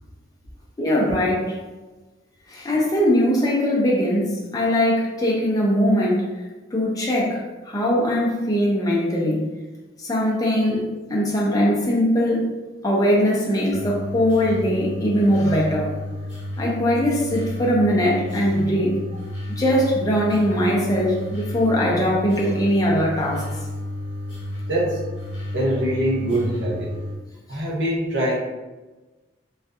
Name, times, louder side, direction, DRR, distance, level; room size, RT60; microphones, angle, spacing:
voice 1, 0.8-1.6 2.5-6.3 6.7-9.4 10.0-10.8 11.1-12.5 12.8-15.9 16.6-19.0 19.5-23.5, equal, 20° left, -4 dB, 0.4 m, -21 dB
sound 1, 13.7-27.1, left 1 dB, 75° left, 0.7 m, -32 dB
voice 2, 24.7-25.0 25.5-27.0 27.5-28.4, right 1 dB, 70° right, -4 dB, 0.7 m, -23 dB
2.6 x 2.4 x 2.3 m, 1.2 s
head